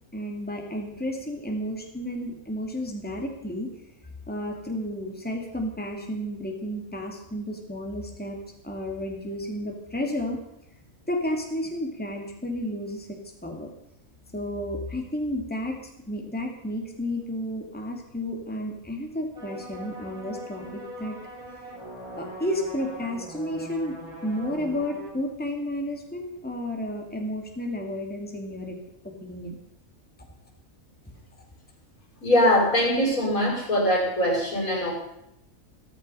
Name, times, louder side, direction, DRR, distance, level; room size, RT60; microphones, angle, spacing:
voice 1, 0.1-3.7 4.3-8.4 8.6-10.4 11.1-13.7 14.3-15.8 16.1-21.2 22.1-24.0 24.2-28.8 29.0-29.6, left 1 dB, 5° left, 1 dB, 2.3 m, -32 dB
sound 1, 19.3-25.1, equal, 90° right, 5.1 m, -41 dB
voice 2, 32.2-34.9, left 1 dB, 75° left, -2 dB, 6.3 m, -22 dB
14.5 x 14.0 x 5.5 m, 0.83 s
omnidirectional pair, 1.5 m